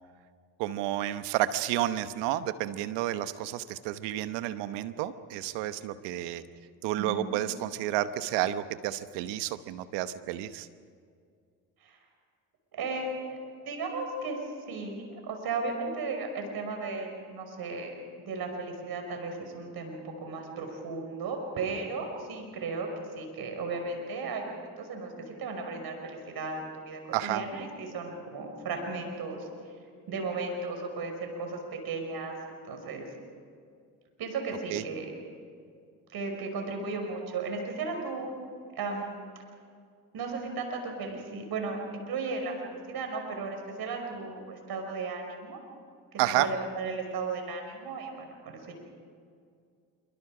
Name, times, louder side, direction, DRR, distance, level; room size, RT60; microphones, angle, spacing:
voice 1, 0.6-6.4 6.8-10.7 27.1-27.4 34.7-34.8 46.2-46.5, right 13 dB, 75° right, 12 dB, 1.1 m, -30 dB
voice 2, 7.0-7.3 11.8-12.0 12.7-13.4 13.7-14.4 14.7-17.9 18.3-22.9 23.2-25.1 25.4-29.5 30.1-32.3 32.7-33.1 34.2-35.1 36.1-38.3 38.8-39.2 40.1-45.6 46.4-48.7, right 3 dB, 60° right, 3 dB, 5.7 m, -35 dB
27.0 x 25.0 x 5.0 m, 2.2 s
hypercardioid pair, 60°, 42 cm